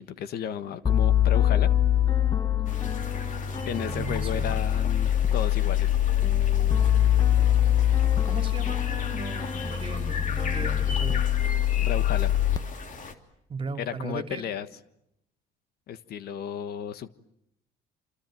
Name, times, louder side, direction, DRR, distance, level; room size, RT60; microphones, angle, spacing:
voice 1, 0.0-1.7 3.6-5.9 11.8-12.3 13.8-14.7 15.9-17.1, left 8 dB, 65° left, 1.4 m, -33 dB
sound 1, 0.9-12.6, left 11 dB, 25° left, 1.2 m, -24 dB
sound 2, 2.7-13.1, left 4 dB, 50° left, 3.0 m, -39 dB
voice 2, 3.9-4.6 8.3-11.2 13.5-14.4, right 4 dB, 30° right, 2.7 m, -37 dB
28.0 x 27.5 x 7.6 m
cardioid pair, 110°, 17 cm